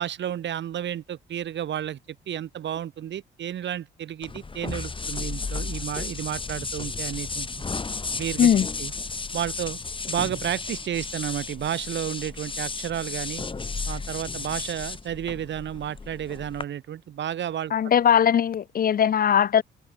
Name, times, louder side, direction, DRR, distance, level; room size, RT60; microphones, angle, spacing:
voice 1, 0.0-2.0 2.3-7.5 8.2-8.5 8.8-8.9 9.3-9.8 10.1-13.4 13.9-17.7, right 10 dB, 65° right, 3.9 m, -31 dB
sound 1, 4.2-16.6, left 4 dB, 25° left, 2.3 m, -33 dB
voice 2, 17.7-19.6, left 8 dB, 45° left, 0.8 m, -20 dB
cardioid pair, 90°, 20 cm